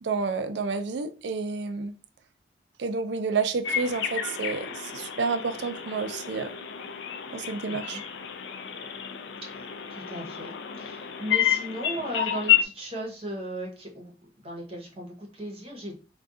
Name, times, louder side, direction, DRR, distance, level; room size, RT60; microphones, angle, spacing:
voice 1, 0.0-1.9 2.8-6.5 7.3-8.0, right 4 dB, 75° right, 0.4 m, -30 dB
sound 1, 3.6-12.6, left 10 dB, 85° left, 0.4 m, -30 dB
voice 2, 7.7-8.0 9.5-14.1 14.4-16.0, right 1 dB, 35° right, 0.9 m, -37 dB
2.5 x 2.3 x 3.6 m
head